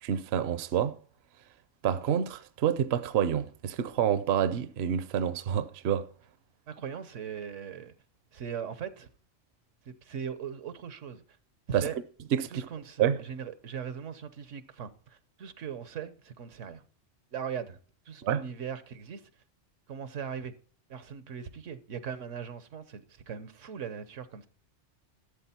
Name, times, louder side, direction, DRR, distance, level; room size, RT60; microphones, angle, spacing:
voice 1, 0.0-1.0 1.8-6.1 11.7-11.9 12.3-12.7 13.0-13.2 18.2-18.4, right 9 dB, 65° right, 0.8 m, -28 dB
voice 2, 6.7-7.9 8.3-9.1 9.8-11.2 11.8-12.0 12.5-16.8 17.3-17.8 18.0-19.3 19.9-20.5 20.9-24.5, right 7 dB, 85° right, 1.3 m, -39 dB
12.5 x 7.5 x 4.3 m
omnidirectional pair, 1.2 m